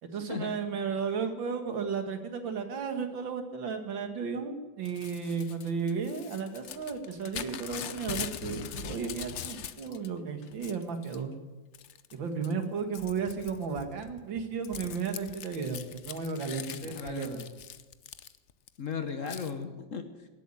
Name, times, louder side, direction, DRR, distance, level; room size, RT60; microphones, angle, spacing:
voice 1, 0.0-11.3 12.1-17.5, right 5 dB, 75° right, 7 dB, 2.4 m, -34 dB
Crumpling crinkling / Tearing, 4.8-10.1 10.4-11.2 11.7-12.1 12.4-18.7 19.3-19.5, left 9 dB, 65° left, 0.7 m, -42 dB
voice 2, 16.7-17.5 18.8-20.3, left 6 dB, 50° left, 8 dB, 1.2 m, -37 dB
18.0 x 8.4 x 9.8 m, 1.2 s
omnidirectional pair, 2.1 m